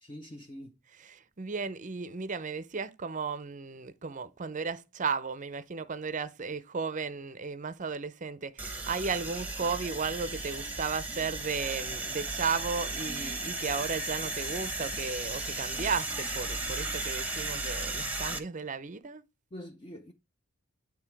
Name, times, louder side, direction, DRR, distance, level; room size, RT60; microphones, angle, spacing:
voice 1, 0.0-0.7 19.5-20.1, equal, 25° left, 0.6 m, -44 dB
voice 2, 0.9-19.2, right 5 dB, 35° right, 0.6 m, -34 dB
sound 1, 8.6-18.4, right 2 dB, 5° right, 0.9 m, -35 dB
8.9 x 3.4 x 4.6 m
head